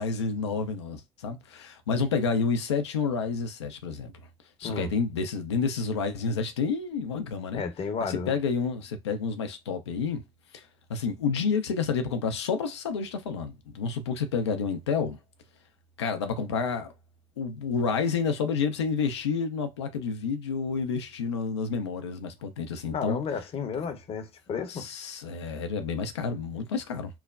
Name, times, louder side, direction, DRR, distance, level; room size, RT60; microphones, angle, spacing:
voice 1, 0.0-4.1 4.6-7.6 8.0-10.2 10.5-10.6 10.9-15.2 16.0-16.9 17.4-23.2 23.7-23.8 24.7-27.2, left 5 dB, 80° left, 0.5 m, -29 dB
voice 2, 7.5-8.3 22.9-24.9, left 5 dB, 45° left, 0.8 m, -32 dB
3.1 x 2.1 x 2.4 m
figure-of-eight pair, 55°, 14 cm